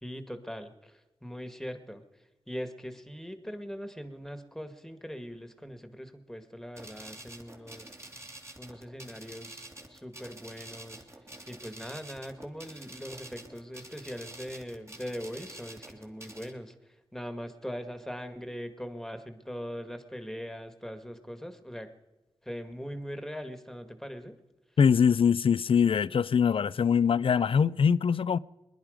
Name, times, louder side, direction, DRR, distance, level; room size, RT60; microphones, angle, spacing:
voice 1, 0.0-7.9 8.6-11.1 11.5-21.9 22.4-24.4, equal, 5° left, 1.9 m, -41 dB
sound 1, 6.8-16.5, right 1 dB, 30° right, 2.6 m, -48 dB
voice 2, 24.8-28.4, left 7 dB, 60° left, 0.5 m, -23 dB
21.0 x 10.5 x 5.2 m
cardioid pair, 45°, 10 cm